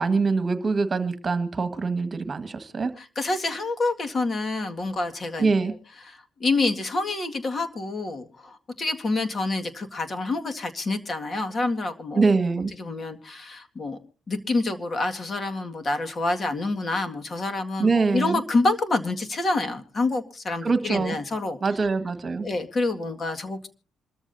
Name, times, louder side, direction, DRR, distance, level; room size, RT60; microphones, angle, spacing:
voice 1, 0.0-2.9 5.4-5.7 12.2-12.7 17.8-18.4 20.6-21.2 21.6-22.5, right 4 dB, 35° right, 11 dB, 1.7 m, -24 dB
voice 2, 3.0-5.7 6.1-12.3 12.8-14.0 14.3-21.6 22.4-23.7, left 2 dB, 40° left, 6 dB, 2.0 m, -27 dB
27.0 x 13.5 x 2.7 m, 0.35 s
cardioid pair, 90°, 0 cm